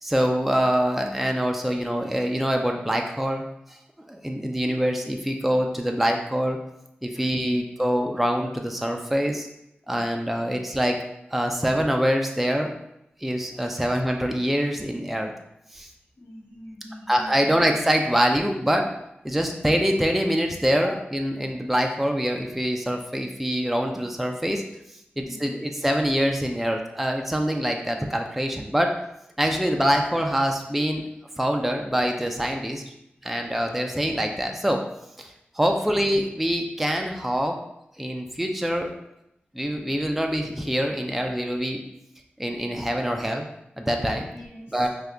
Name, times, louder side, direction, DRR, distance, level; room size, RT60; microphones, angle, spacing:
voice 1, 0.0-3.4 3.7-3.8 4.1-6.6 7.0-9.5 9.9-11.0 11.3-12.7 13.2-15.3 15.7-15.9 17.1-18.9 19.2-24.6 25.2-28.9 29.4-31.0 31.4-32.8 33.2-34.8 35.2-37.6 38.0-39.0 39.5-41.8 42.4-43.5 43.8-44.3 44.7-44.9, equal, 5° right, 2 dB, 0.4 m, -24 dB
voice 2, 7.1-7.6 16.2-17.7 19.3-19.4 20.8-21.0 25.1-25.6 44.3-44.9, left 1 dB, 80° left, -6 dB, 1.1 m, -43 dB
2.7 x 2.4 x 3.3 m, 0.82 s
cardioid pair, 50°, 4 cm